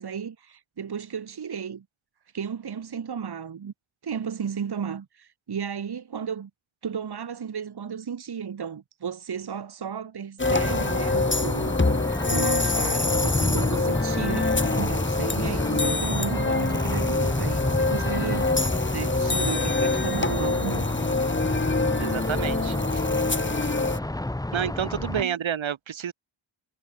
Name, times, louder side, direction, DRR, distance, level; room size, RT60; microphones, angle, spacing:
voice 1, 0.0-1.9 2.3-3.7 4.0-6.5 6.8-20.9 25.1-25.4, right 7 dB, 55° right, 2.3 m, -34 dB
sound 1, 10.4-24.0, left 3 dB, 25° left, 3.6 m, -26 dB
sound 2, 10.4-25.2, left 1 dB, 10° left, 1.2 m, -29 dB
voice 2, 22.0-23.2 24.5-26.1, right 9 dB, 85° right, 3.2 m, -30 dB
wide cardioid pair, 110°, 45 cm